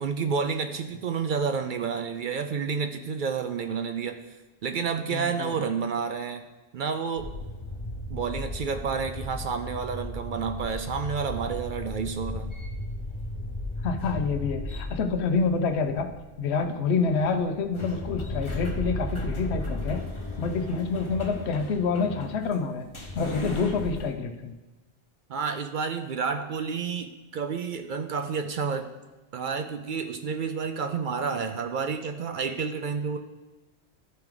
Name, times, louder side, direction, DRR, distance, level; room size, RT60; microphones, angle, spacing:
voice 1, 0.0-4.2 4.6-6.4 6.7-7.3 8.1-12.5 25.3-28.9 29.3-33.2, right 6 dB, 60° right, 7 dB, 0.6 m, -30 dB
voice 2, 5.1-5.5 13.8-16.1 16.4-20.0 20.4-22.9 23.2-24.5, left 4 dB, 75° left, 7 dB, 1.0 m, -27 dB
sound 1, 7.2-24.1, left 1 dB, 30° left, 1.0 m, -36 dB
12.5 x 4.5 x 3.8 m, 1.1 s
omnidirectional pair, 1.1 m